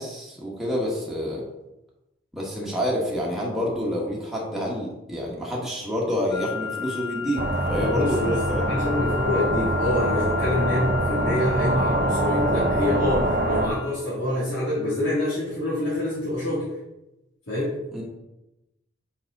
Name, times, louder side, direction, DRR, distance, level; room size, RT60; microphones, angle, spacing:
voice 1, 0.0-1.4 2.3-8.6 17.9-18.0, left 1 dB, ahead, -4 dB, 1.3 m, -28 dB
sound 1, 6.3-13.9, left 8 dB, 15° left, 1.1 m, -34 dB
sound 2, 7.4-13.7, right 1 dB, 40° right, 0.6 m, -24 dB
voice 2, 7.9-16.7 17.5-17.7, left 1 dB, 85° left, -11 dB, 2.5 m, -26 dB
5.8 x 5.0 x 4.0 m, 0.94 s
head